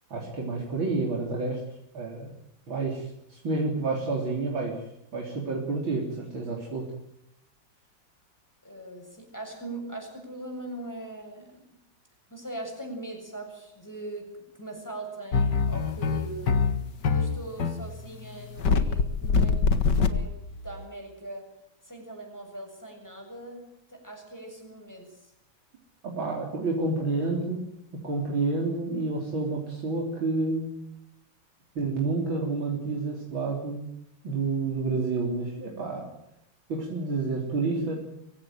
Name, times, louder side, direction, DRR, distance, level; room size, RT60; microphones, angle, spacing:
voice 1, 0.1-1.6 1.9-2.4 2.7-4.8 5.1-6.9 26.0-27.7 28.0-30.7 31.8-33.9 34.2-36.1 36.7-38.0, right 3 dB, 80° right, -1 dB, 4.4 m, -29 dB
voice 2, 8.6-11.8 12.3-16.7 17.0-20.3 20.6-21.5 21.8-23.6 23.9-25.3, right 2 dB, 10° left, 2 dB, 7.5 m, -41 dB
sound 1, 15.3-20.9, left 5 dB, 60° left, 2.2 m, -24 dB
24.0 x 16.5 x 9.1 m, 0.80 s
omnidirectional pair, 2.1 m